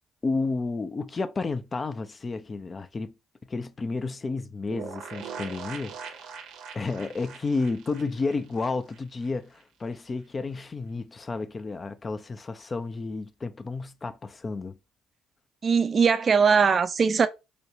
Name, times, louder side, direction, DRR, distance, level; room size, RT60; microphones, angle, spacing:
voice 1, 0.2-3.1 3.5-6.3 6.7-14.8, left 3 dB, 30° left, 0.5 m, -31 dB
sound 1, 4.7-9.3 9.6-9.7 9.9-10.0, right 6 dB, 60° right, 0.8 m, -41 dB
voice 2, 15.6-17.3, right 5 dB, 40° right, 0.5 m, -20 dB
3.2 x 2.2 x 4.0 m
hypercardioid pair, 55°, 0 cm